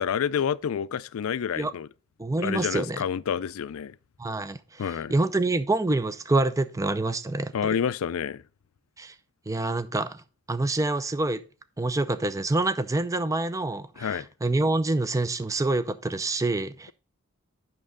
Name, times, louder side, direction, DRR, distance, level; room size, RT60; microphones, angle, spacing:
voice 1, 0.0-1.9 2.4-3.9 4.8-5.1 7.5-8.4 14.0-14.3, left 7 dB, 75° left, 0.4 m, -28 dB
voice 2, 2.2-3.0 4.2-7.5 9.0-9.1 9.5-10.2 10.5-11.4 11.8-16.9, right 2 dB, 15° right, 0.4 m, -26 dB
8.7 x 6.1 x 3.7 m
head